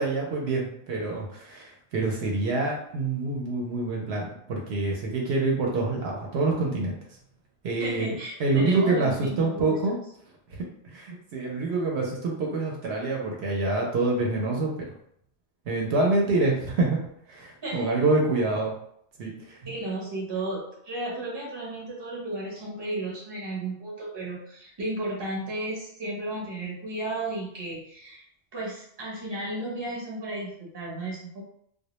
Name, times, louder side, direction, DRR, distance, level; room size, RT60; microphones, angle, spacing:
voice 1, 0.0-7.0 7.6-9.9 10.5-10.6 10.8-14.8 15.7-17.0 17.3-18.7 19.2-19.7, right 3 dB, 70° right, -1 dB, 0.8 m, -26 dB
voice 2, 7.8-9.8 17.6-17.9 19.7-28.2 28.5-31.4, right 2 dB, 25° right, -4 dB, 0.7 m, -33 dB
2.2 x 2.1 x 2.9 m, 0.69 s
omnidirectional pair, 1.2 m